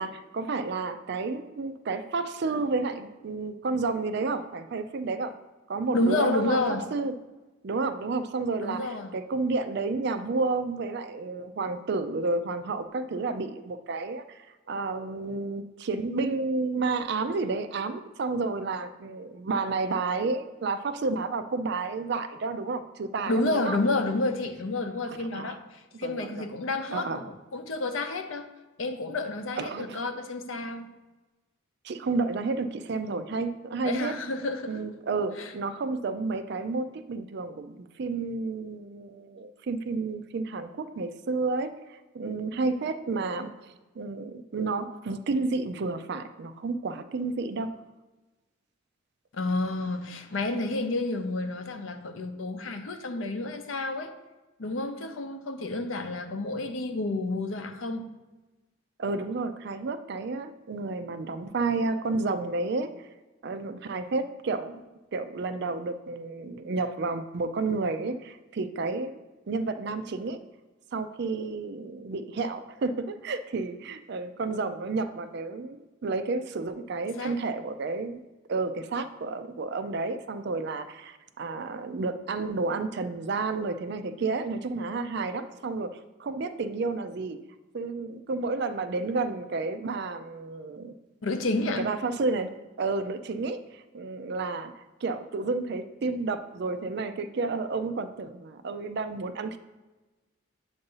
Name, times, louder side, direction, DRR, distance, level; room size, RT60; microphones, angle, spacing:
voice 1, 0.0-5.3 5.7-6.6 6.9-7.1 7.6-23.8 25.3-25.5 26.0-26.5 26.9-27.2 29.6-30.0 31.8-34.1 34.7-47.7 59.0-63.1 63.4-64.8 65.1-69.1 69.5-70.4 70.9-78.2 78.5-87.4 87.7-90.9 91.8-94.7 95.0-99.6, right 3 dB, 55° right, 10 dB, 0.4 m, -31 dB
voice 2, 5.9-6.9 8.6-9.2 23.3-28.5 28.8-30.9 33.8-34.8 35.4-35.5 49.3-54.1 54.6-58.1 77.2-77.4 91.2-91.9, left 2 dB, 75° left, 7 dB, 0.6 m, -30 dB
7.8 x 2.6 x 5.4 m, 1.1 s
head